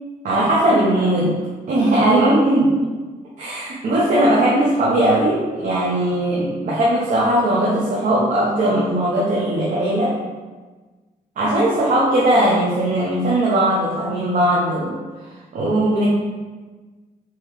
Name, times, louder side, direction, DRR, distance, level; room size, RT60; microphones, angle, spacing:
voice 1, 0.2-1.3 1.7-2.8 3.4-10.2 11.4-15.0 15.5-16.1, right 1 dB, 55° right, -6 dB, 0.8 m, -18 dB
5.5 x 3.1 x 3.1 m, 1.3 s
cardioid pair, 135°, 16 cm